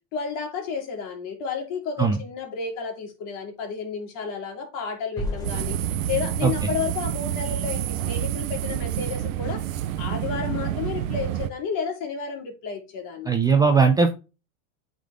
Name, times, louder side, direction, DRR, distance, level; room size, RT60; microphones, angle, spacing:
voice 1, 0.1-9.7 10.0-13.3, left 6 dB, 55° left, 2.6 m, -32 dB
sound 1, 5.2-8.2, left 1 dB, 10° left, 1.5 m, -36 dB
sound 2, 5.4-11.5, right 11 dB, 90° right, 0.8 m, -28 dB
voice 2, 13.3-14.1, right 5 dB, 10° right, 0.4 m, -18 dB
8.5 x 3.8 x 3.5 m
supercardioid pair, 145°, 38 cm